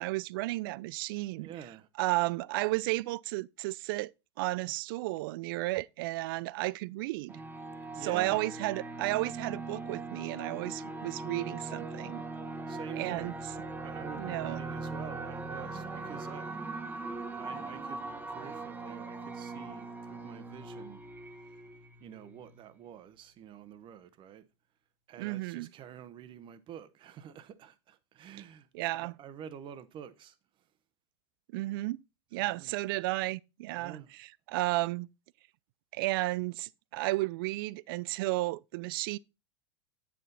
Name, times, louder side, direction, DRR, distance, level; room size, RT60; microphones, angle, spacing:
voice 1, 0.0-1.5 2.0-4.1 4.4-7.4 8.0-12.2 13.0-13.3 14.2-14.6 25.2-25.7 28.7-29.2 31.5-32.0 32.3-35.1 35.9-39.2, right 19 dB, 55° right, 0.4 m, -33 dB
voice 2, 1.4-1.9 7.9-8.5 12.7-13.5 13.8-16.6 17.4-21.0 22.0-24.5 25.1-30.4 32.4-32.7 33.7-34.1, right 9 dB, 35° right, 1.1 m, -47 dB
sound 1, 7.3-22.6, right 3 dB, 10° right, 1.2 m, -40 dB
9.1 x 6.0 x 4.0 m
figure-of-eight pair, 85°, 14 cm